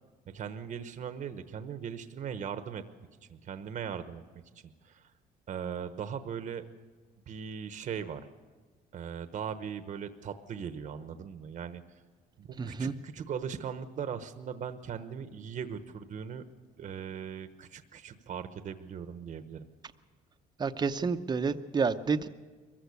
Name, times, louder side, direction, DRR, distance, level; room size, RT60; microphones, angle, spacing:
voice 1, 0.3-2.8 3.3-4.2 4.5-5.1 5.5-6.6 7.3-8.2 8.9-11.8 12.4-16.4 16.8-19.7, right 7 dB, 50° right, 10 dB, 1.0 m, -39 dB
voice 2, 12.6-12.9 20.6-22.3, right 5 dB, 25° right, 9 dB, 0.7 m, -29 dB
22.0 x 15.0 x 8.2 m, 1.4 s
cardioid pair, 110°, 17 cm